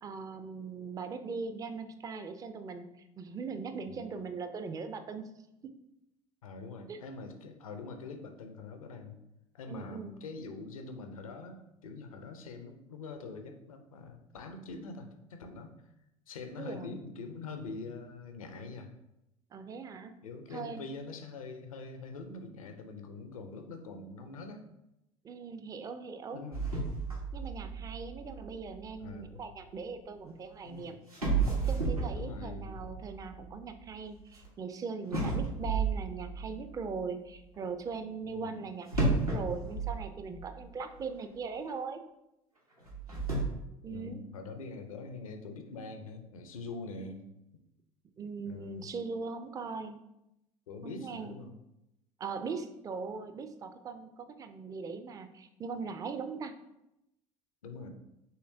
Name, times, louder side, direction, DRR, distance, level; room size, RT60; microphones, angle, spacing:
voice 1, 0.0-2.9 3.2-5.3 5.6-5.7 6.9-7.0 9.7-10.2 16.6-17.0 19.5-20.1 20.5-20.9 25.2-26.4 27.3-31.0 31.7-42.0 43.8-44.2 48.2-50.0 50.8-51.4 52.2-56.5, right 5 dB, 20° right, 9 dB, 0.4 m, -40 dB
voice 2, 6.4-9.2 9.5-15.7 16.3-18.9 20.2-24.7 26.3-26.7 29.0-29.3 30.6-30.9 32.2-32.9 38.3-38.6 43.9-47.2 48.5-48.9 50.7-51.6 57.6-57.9, left 3 dB, 70° left, 6 dB, 0.6 m, -44 dB
sound 1, 26.5-29.7 30.6-30.7 31.1-34.5 35.1-37.0 38.9-40.7 41.0-41.1 41.7-41.8 42.8-43.4, right 3 dB, 90° right, 1.1 m, -33 dB
5.6 x 3.1 x 2.6 m, 0.87 s
figure-of-eight pair, 65°, 18 cm